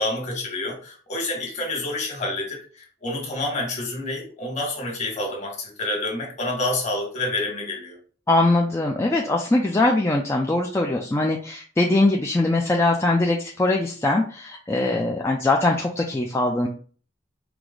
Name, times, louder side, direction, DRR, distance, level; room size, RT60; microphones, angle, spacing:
voice 1, 0.0-8.0, left 2 dB, 40° left, -1 dB, 1.4 m, -28 dB
voice 2, 8.3-16.7, left 2 dB, 15° left, 0 dB, 0.3 m, -21 dB
4.6 x 2.0 x 3.7 m, 0.42 s
head